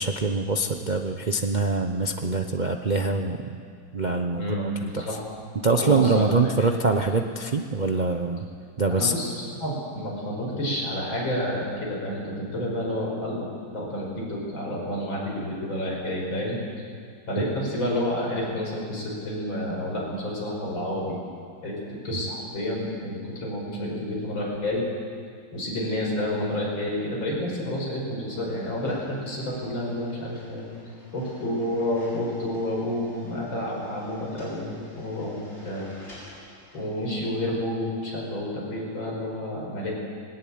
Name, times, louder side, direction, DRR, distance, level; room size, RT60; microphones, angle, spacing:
voice 1, 0.0-3.6 3.9-5.1 5.6-8.4 8.8-9.1, right 3 dB, 85° right, 4 dB, 0.4 m, -24 dB
voice 2, 4.3-4.6 5.0-5.3 5.7-6.3 8.9-9.3 9.6-13.5 13.7-16.6 17.3-21.2 21.6-21.8 22.0-24.8 25.5-30.6 31.1-35.9 36.7-39.9, left 1 dB, 70° left, -2 dB, 6.3 m, -29 dB
sound 1, 28.3-37.2, left 1 dB, 30° left, 7.1 m, -50 dB
21.0 x 18.5 x 8.7 m, 2.3 s
omnidirectional pair, 2.2 m